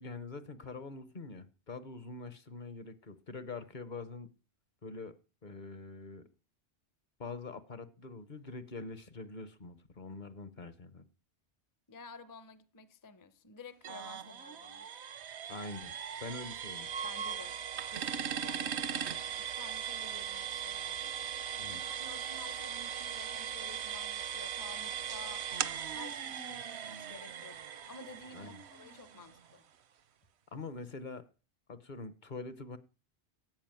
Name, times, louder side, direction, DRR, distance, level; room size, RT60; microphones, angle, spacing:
voice 1, 0.0-4.3 4.8-5.2 5.4-6.2 7.2-11.0 15.5-15.9 16.2-16.9 21.6-21.8 28.3-28.6 30.5-31.2 31.7-32.8, left 3 dB, 45° left, 1.0 m, -44 dB
voice 2, 11.9-14.9 17.0-17.6 17.9-21.3 21.7-25.5 25.9-27.6 27.9-29.6, left 3 dB, 25° left, 0.6 m, -52 dB
sound 1, 13.8-29.5, right 8 dB, 75° right, 1.0 m, -39 dB
13.5 x 5.0 x 9.0 m
omnidirectional pair, 1.1 m